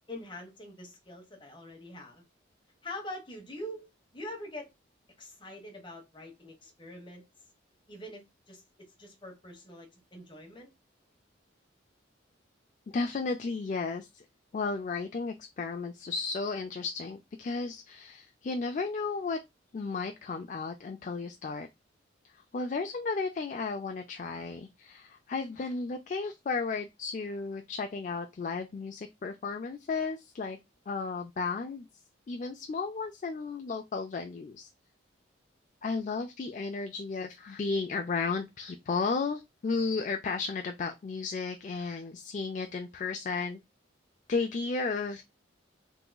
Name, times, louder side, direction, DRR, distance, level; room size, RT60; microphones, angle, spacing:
voice 1, 0.1-2.2 2.8-4.7 5.2-7.2 7.9-8.6 9.0-10.7, left 1 dB, 25° left, 1.1 m, -44 dB
voice 2, 12.9-14.3 14.5-19.4 19.7-21.7 22.2-30.6 30.9-31.9 32.3-34.7 35.8-43.6 44.3-45.2, left 4 dB, 40° left, 0.3 m, -34 dB
3.7 x 2.9 x 2.2 m
head